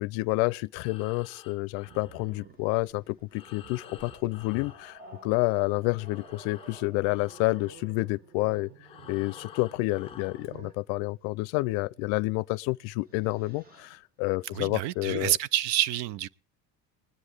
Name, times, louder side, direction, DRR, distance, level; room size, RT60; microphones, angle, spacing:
voice 1, 0.0-8.7 9.1-15.3, left 22 dB, 85° left, 0.5 m, -29 dB
Breathing, 0.7-5.6 5.9-10.6, left 8 dB, 15° left, 0.6 m, -51 dB
Growling, 1.8-10.9 12.2-12.4 12.8-14.0, right 4 dB, 25° right, 0.9 m, -52 dB
voice 2, 14.5-16.3, right 12 dB, 65° right, 0.6 m, -28 dB
20.5 x 9.9 x 3.5 m
cardioid pair, 180°, 38 cm